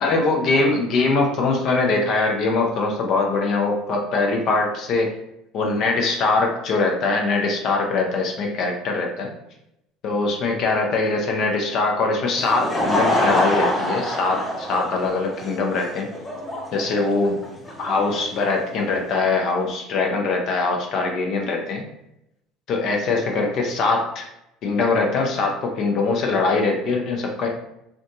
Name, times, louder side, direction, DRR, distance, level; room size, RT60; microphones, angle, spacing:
voice 1, 0.0-5.1 5.5-9.3 10.0-16.1 16.7-17.4 17.8-21.8 22.7-24.3 24.6-27.5, left 3 dB, 55° left, 1 dB, 0.5 m, -22 dB
Laughter / Crowd, 12.2-19.2, left 1 dB, 15° left, 0.6 m, -26 dB
2.5 x 2.3 x 2.6 m, 0.84 s
hypercardioid pair, 75°, 0 cm